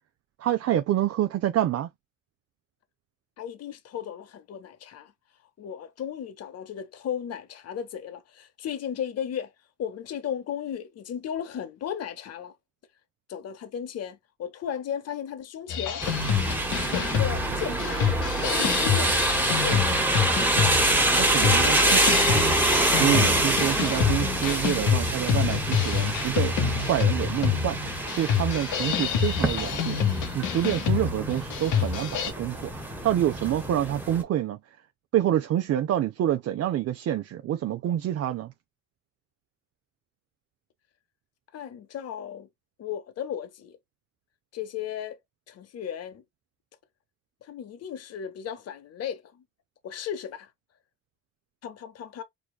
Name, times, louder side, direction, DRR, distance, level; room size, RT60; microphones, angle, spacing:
voice 1, 0.4-1.9 21.2-22.6 23.0-27.8 28.1-30.0 30.3-32.7 33.0-34.6 35.1-38.5, right 11 dB, 55° right, 0.5 m, -27 dB
voice 2, 3.4-5.1 5.6-9.5 9.8-12.5 13.3-16.0 16.9-18.1 18.4-19.1 19.6-20.1 41.5-42.5 42.8-43.8 44.5-45.2 45.5-46.2 47.4-49.2 49.8-50.5 51.6-52.2, left 9 dB, 55° left, 0.8 m, -35 dB
sound 1, 15.7-32.3, left 8 dB, 80° left, 0.9 m, -27 dB
sound 2, 16.0-34.2, right 1 dB, 5° right, 1.2 m, -26 dB
4.8 x 2.3 x 2.3 m
cardioid pair, 90°, 30 cm